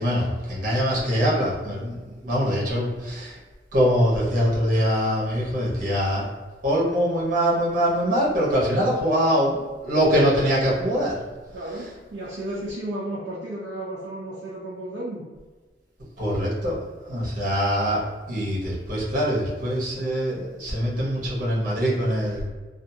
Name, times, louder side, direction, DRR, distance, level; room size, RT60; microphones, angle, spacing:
voice 1, 0.0-3.4 3.7-6.3 6.6-11.2 16.2-22.5, equal, 50° right, -5 dB, 1.0 m, -23 dB
voice 2, 11.5-15.3, right 1 dB, 70° right, -6 dB, 0.5 m, -33 dB
2.6 x 2.5 x 2.7 m, 1.3 s
head